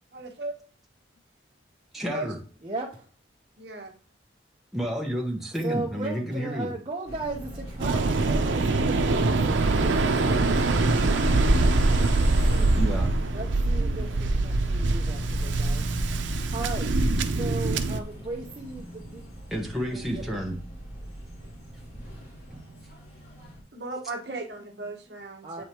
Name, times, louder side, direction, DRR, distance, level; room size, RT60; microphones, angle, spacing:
voice 1, 0.1-0.6 2.1-2.3 3.6-3.9 12.2-12.8 13.8-14.1 23.7-25.6, right 2 dB, 65° right, 3 dB, 1.2 m, -37 dB
voice 2, 1.9-2.4 4.7-6.7 12.7-13.1 19.5-20.5 22.5-22.6, equal, ahead, -2 dB, 1.2 m, -30 dB
voice 3, 2.6-3.1 5.6-12.7 13.3-15.8 16.5-19.2 19.9-20.2 25.4-25.6, right 2 dB, 30° right, -2 dB, 0.9 m, -37 dB
sound 1, 7.0-23.6, equal, 55° left, 3.3 m, -41 dB
Waves surf, 7.8-18.0, right 2 dB, 90° right, 0.6 m, -23 dB
8.2 x 5.1 x 3.0 m, 0.40 s
head